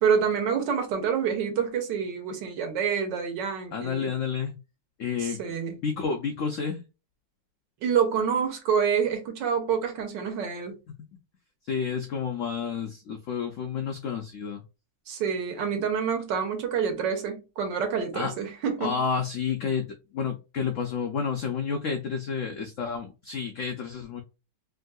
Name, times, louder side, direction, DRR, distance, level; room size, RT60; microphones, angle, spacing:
voice 1, 0.0-4.1 5.2-5.7 7.8-10.7 15.1-19.0, right 7 dB, 75° right, 1.6 m, -27 dB
voice 2, 3.7-4.5 5.0-5.4 5.8-6.8 11.6-14.6 18.1-18.3 18.8-24.2, left 6 dB, 90° left, 0.6 m, -30 dB
3.5 x 2.6 x 2.2 m
omnidirectional pair, 2.0 m